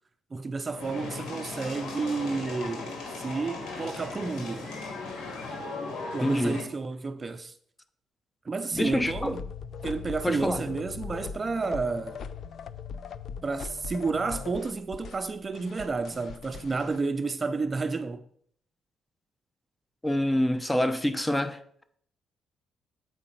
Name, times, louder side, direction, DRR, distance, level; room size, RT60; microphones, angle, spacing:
voice 1, 0.3-4.7 6.1-7.5 8.4-9.5 9.8-12.2 13.4-18.2, right 4 dB, 30° right, 0.5 m, -31 dB
sound 1, 0.7-6.6, left 3 dB, 75° left, 2.2 m, -37 dB
voice 2, 6.2-6.6 8.7-9.3 10.2-10.6 20.0-21.6, left 1 dB, 10° left, 0.7 m, -26 dB
sound 2, 8.7-17.0, left 6 dB, 60° left, 0.5 m, -40 dB
7.7 x 4.9 x 5.6 m
cardioid pair, 90°, 0 cm